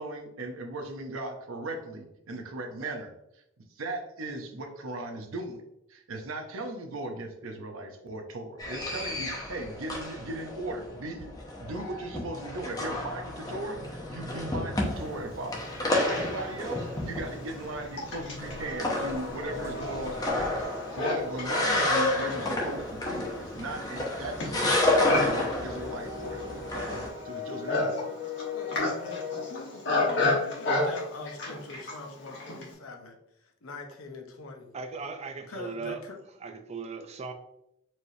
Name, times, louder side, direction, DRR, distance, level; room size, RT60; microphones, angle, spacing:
voice 1, 0.0-3.1 3.8-5.6 5.9-11.3 11.6-15.7 16.1-27.9, right 2 dB, 75° right, 4 dB, 0.7 m, -38 dB
sound 1, 8.6-27.1, left 2 dB, 20° left, 0.7 m, -31 dB
sound 2, 12.9-20.6, right 1 dB, 15° right, 0.8 m, -47 dB
Livestock farm animals working animals, 16.0-16.1 16.8-32.7, left 2 dB, 60° left, 1.2 m, -32 dB
voice 2, 26.4-26.8 28.5-34.7 35.5-36.2, left 3 dB, 80° left, 3 dB, 0.8 m, -43 dB
voice 3, 34.7-36.0 36.4-37.3, right 4 dB, 30° right, 7 dB, 0.4 m, -37 dB
4.5 x 3.2 x 2.7 m, 0.83 s
head